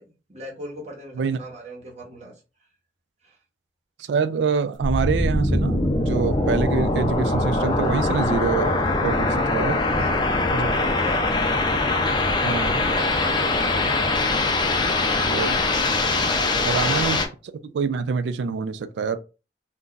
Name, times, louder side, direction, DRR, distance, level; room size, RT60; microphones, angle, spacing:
voice 1, 0.0-2.4 3.2-3.4 9.8-11.5 12.2-14.3, right 1 dB, 40° right, 1.1 m, -40 dB
voice 2, 4.0-9.8 10.5-10.7 12.4-12.8 15.2-15.7 16.6-17.2 17.4-19.2, right 5 dB, 80° right, 0.4 m, -26 dB
sound 1, 4.8-17.3, left 2 dB, 25° left, 0.5 m, -22 dB
2.5 x 2.2 x 3.8 m
head